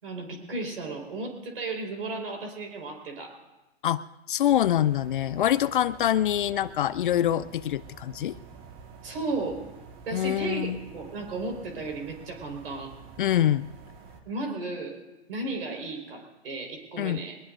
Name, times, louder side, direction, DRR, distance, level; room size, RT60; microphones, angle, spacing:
voice 1, 0.0-3.4 9.0-9.6 10.1-12.9 14.2-15.0 15.3-17.4, right 3 dB, 60° right, 2 dB, 4.8 m, -34 dB
voice 2, 4.3-8.3 10.1-10.8 13.2-13.7 17.0-17.2, left 11 dB, 50° left, 17 dB, 0.5 m, -25 dB
sound 1, 4.5-14.2, right 6 dB, 25° right, 1.6 m, -48 dB
22.0 x 20.5 x 2.6 m, 1.0 s
figure-of-eight pair, 125°, 33 cm